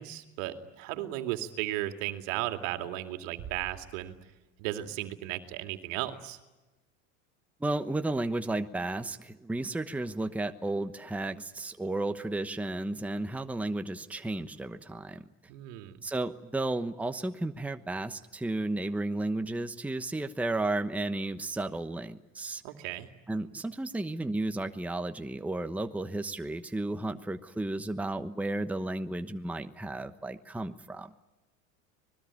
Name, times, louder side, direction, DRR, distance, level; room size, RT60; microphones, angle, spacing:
voice 1, 0.0-4.1 4.6-6.4 15.5-16.0 22.6-23.1, right 14 dB, 70° right, 7 dB, 2.5 m, -35 dB
sound 1, 3.4-4.8, right 9 dB, 40° right, 1.4 m, -48 dB
voice 2, 7.6-15.2 16.0-22.6 23.3-31.1, right 2 dB, 5° right, 8 dB, 1.0 m, -33 dB
25.0 x 20.5 x 9.9 m, 1.1 s
supercardioid pair, 105°, 40 cm